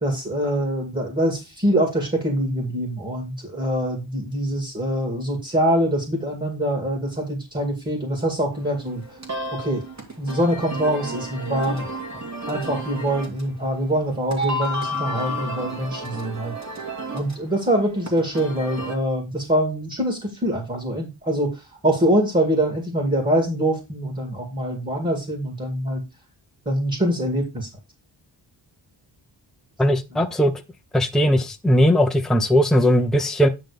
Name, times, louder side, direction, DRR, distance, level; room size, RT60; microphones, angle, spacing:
voice 1, 0.0-9.0 9.5-9.8 10.2-11.9 12.5-16.5 17.1-21.6 21.8-26.0 26.7-27.7, right 1 dB, 20° right, 2.4 m, -24 dB
sound 1, 8.5-19.0, equal, 35° right, 2.4 m, -32 dB
voice 2, 29.8-30.5 30.9-33.5, equal, ahead, 0.7 m, -18 dB
9.3 x 3.9 x 5.1 m
wide cardioid pair, 130°, 45 cm